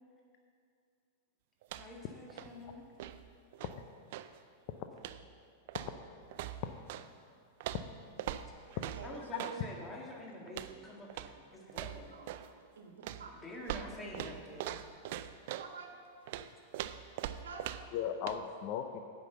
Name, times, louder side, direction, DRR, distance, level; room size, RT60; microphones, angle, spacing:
sound 1, 1.6-2.1 2.3-4.4 5.0-5.3 5.7-7.1 7.6-9.6 10.5-10.8 11.1-11.4 11.7-12.5 13.0-15.7 16.3-18.0 18.3-18.4, right 12 dB, 60° right, 0.4 m, -42 dB
voice 1, 1.8-2.9 9.0-12.1 13.4-14.8, left 1 dB, 15° left, -2 dB, 1.9 m, -47 dB
voice 2, 2.4-2.7 3.6-3.7 4.7-4.8 5.7-5.9 6.6-6.7 7.7-7.8 8.8-8.9 9.3-9.4 17.9-19.0, left 9 dB, 50° left, 6 dB, 0.6 m, -38 dB
voice 3, 8.9-9.7 10.9-11.0 12.1-13.3 14.5-14.6 15.6-15.9 17.2-17.7, right 5 dB, 85° right, 3 dB, 1.3 m, -49 dB
9.6 x 5.9 x 7.8 m, 2.3 s
hypercardioid pair, 105°, 0 cm